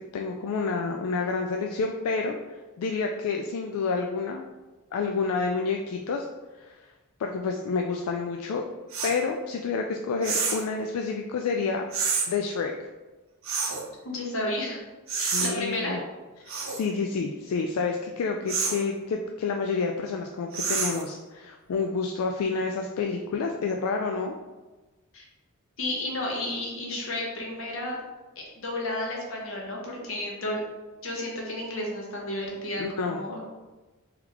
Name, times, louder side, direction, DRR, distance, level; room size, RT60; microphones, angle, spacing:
voice 1, 0.0-2.4 2.8-4.4 4.9-6.3 6.6-6.9 7.2-8.7 9.0-11.8 12.3-12.7 15.1-16.0 16.6-24.3 32.8-33.2, left 4 dB, 85° left, 3 dB, 0.3 m, -29 dB
sound 1, 8.9-9.2 10.2-10.7 11.9-12.3 13.4-13.9 15.1-15.5 16.5-16.8 18.5-18.8 20.5-21.1, right 5 dB, 65° right, 0.6 m, -28 dB
voice 2, 14.0-14.8 15.2-15.9 25.1-25.2 25.8-28.0 28.4-30.6 31.0-33.5, left 1 dB, 65° left, -2 dB, 1.0 m, -32 dB
3.4 x 3.1 x 3.5 m, 1.2 s
head